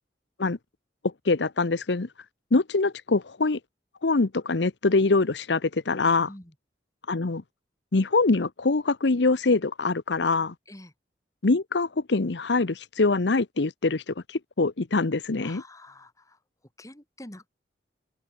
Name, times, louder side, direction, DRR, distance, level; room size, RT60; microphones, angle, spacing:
voice 1, 1.0-2.1 2.5-3.6 4.0-6.3 7.1-7.4 7.9-10.5 11.4-15.6, left 3 dB, 80° left, 0.9 m, -24 dB
voice 2, 15.4-16.4 16.8-17.5, left 1 dB, 20° left, 2.9 m, -46 dB
open air
head